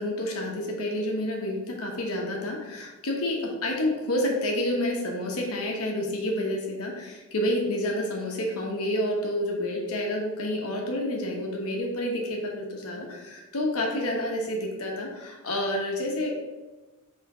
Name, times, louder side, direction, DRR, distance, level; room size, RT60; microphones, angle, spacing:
voice 1, 0.0-16.3, left 1 dB, 70° left, 0 dB, 1.1 m, -29 dB
5.6 x 3.7 x 4.9 m, 1.2 s
head